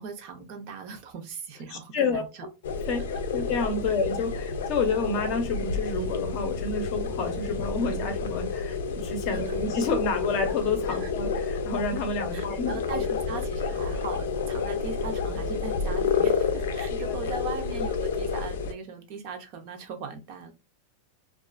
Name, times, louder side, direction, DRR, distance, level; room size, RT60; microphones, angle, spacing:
voice 1, 0.0-2.3 3.9-4.0 9.3-9.6 10.9-11.1 12.3-20.5, right 5 dB, 40° right, 0.5 m, -39 dB
voice 2, 1.7-2.2 2.9-13.0 16.9-17.3, left 4 dB, 40° left, 0.6 m, -29 dB
sound 1, 2.6-18.7, left 5 dB, 90° left, 0.5 m, -30 dB
2.4 x 2.3 x 2.3 m
supercardioid pair, 170°, 0 cm